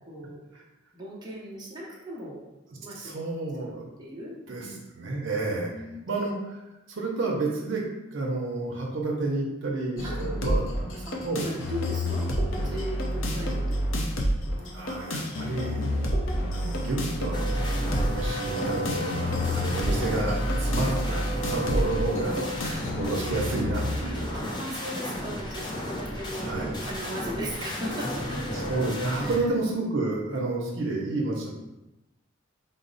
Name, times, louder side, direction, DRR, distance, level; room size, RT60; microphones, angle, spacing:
voice 1, 0.0-0.4 0.9-2.4 2.8-3.1 3.6-4.8 5.7-6.0 10.0-10.5 11.0-13.9 19.6-19.7 22.6-22.8 24.3-28.6 29.2-29.4 30.3-30.5, equal, 20° right, -6 dB, 0.7 m, -38 dB
voice 2, 2.9-3.9 4.5-4.7 4.9-5.7 6.1-6.6 6.9-7.8 8.1-11.5 14.7-15.9 16.5-22.4 23.0-24.3 26.4-26.8 28.5-31.5, right 2 dB, 70° right, -2 dB, 0.7 m, -30 dB
sound 1, 10.0-24.0, equal, 70° left, 0.6 m, -29 dB
sound 2, 17.3-29.4, equal, 20° left, 0.5 m, -32 dB
3.9 x 2.0 x 3.9 m, 0.99 s
head